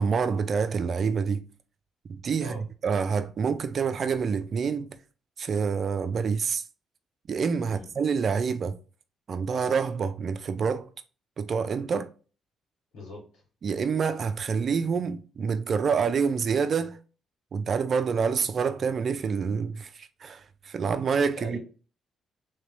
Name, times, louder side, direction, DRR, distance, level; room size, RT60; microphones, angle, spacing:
voice 1, 0.0-1.4 2.1-2.5 2.8-4.9 5.4-6.6 7.3-8.7 9.3-10.9 11.4-12.1 13.6-17.0 17.5-21.6, right 6 dB, 50° right, 0.5 m, -27 dB
voice 2, 12.9-13.4 21.4-21.6, left 1 dB, 80° left, 2.1 m, -41 dB
3.7 x 3.3 x 3.2 m
cardioid pair, 90°, 0 cm